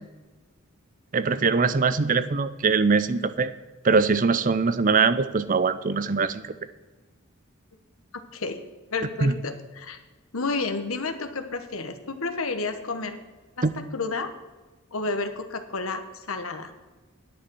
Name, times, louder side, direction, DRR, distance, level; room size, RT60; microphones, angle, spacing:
voice 1, 1.1-3.5 3.8-6.5 9.2-9.4 13.6-13.7, right 4 dB, 40° right, 13 dB, 0.5 m, -22 dB
voice 2, 8.9-10.0 10.3-13.2 13.7-14.3 14.9-16.7, left 3 dB, 80° left, 8 dB, 1.1 m, -31 dB
10.0 x 8.6 x 6.2 m, 1.2 s
head